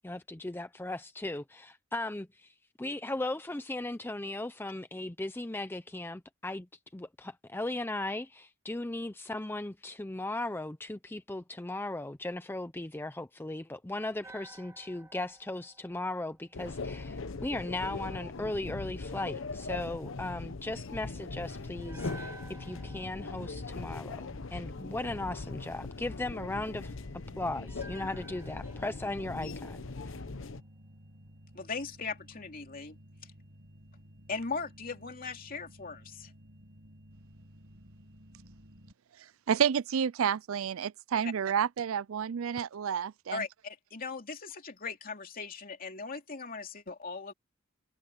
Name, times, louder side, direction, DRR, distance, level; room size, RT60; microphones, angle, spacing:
voice 1, 0.0-6.7 6.9-22.3 22.6-26.9 27.4-30.2, left 2 dB, 10° left, 0.5 m, -37 dB
sound 1, 14.2-17.4 21.8-25.0 27.7-30.9 31.1-31.3, right 2 dB, 15° right, 1.9 m, -54 dB
sound 2, 16.5-30.6, left 3 dB, 65° left, 0.9 m, -40 dB
sound 3, 21.5-38.9, equal, 60° right, 6.1 m, -55 dB
voice 2, 31.5-33.0 34.3-36.3 43.3-47.3, left 4 dB, 45° left, 2.8 m, -39 dB
voice 3, 39.5-43.4, right 8 dB, 85° right, 0.4 m, -30 dB
head